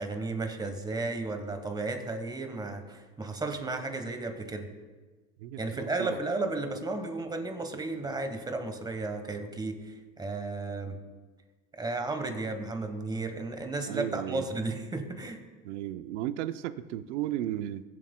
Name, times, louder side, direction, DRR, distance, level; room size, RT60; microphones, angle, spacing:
voice 1, 0.0-4.7 5.6-11.0 11.8-15.4, right 3 dB, 10° right, 7 dB, 1.1 m, -34 dB
voice 2, 5.4-6.2 13.9-14.5 15.6-17.8, right 12 dB, 90° right, 12 dB, 0.6 m, -34 dB
21.5 x 7.6 x 2.2 m, 1.3 s
supercardioid pair, 120°, 34 cm